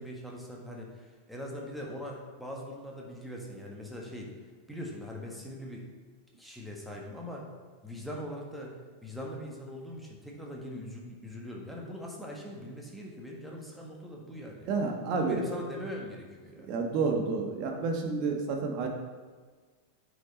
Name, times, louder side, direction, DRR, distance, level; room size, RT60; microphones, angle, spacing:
voice 1, 0.0-4.3 4.7-5.9 6.4-7.5 7.8-8.8 9.0-14.7 15.1-16.7, left 1 dB, ahead, -2 dB, 1.5 m, -41 dB
voice 2, 14.7-15.4 16.6-18.9, right 4 dB, 45° right, 3 dB, 1.2 m, -30 dB
8.5 x 5.2 x 4.1 m, 1.5 s
figure-of-eight pair, 90°, 0 cm